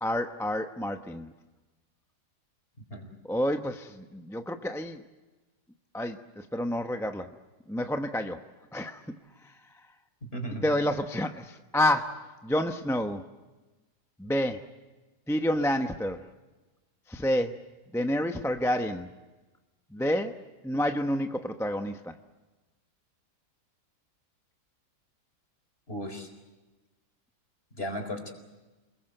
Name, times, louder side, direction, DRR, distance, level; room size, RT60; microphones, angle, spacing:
voice 1, 0.0-1.3 3.3-5.0 5.9-7.3 7.7-8.4 8.7-9.0 10.6-13.3 14.2-14.7 15.3-16.3 17.1-17.6 17.9-19.1 19.9-20.3 20.6-22.1, left 1 dB, ahead, 6 dB, 0.7 m, -29 dB
voice 2, 10.2-10.6 25.9-26.3 27.7-28.3, equal, 35° left, 5 dB, 4.5 m, -35 dB
28.0 x 21.5 x 7.9 m, 1.2 s
omnidirectional pair, 1.8 m